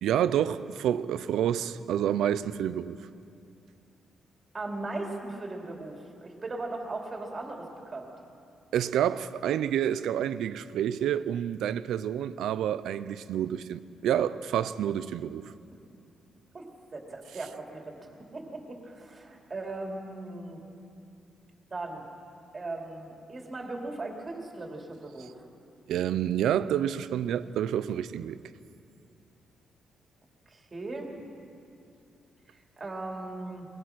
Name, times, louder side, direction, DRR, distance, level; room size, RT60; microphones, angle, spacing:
voice 1, 0.0-3.0 8.7-15.5 25.9-28.4, right 10 dB, 85° right, 0.6 m, -28 dB
voice 2, 4.5-8.1 16.5-20.6 21.7-22.0 22.5-25.4 30.5-31.1 32.5-33.7, right 2 dB, 30° right, 2.9 m, -38 dB
21.0 x 21.0 x 6.0 m
cardioid pair, 130°, 0 cm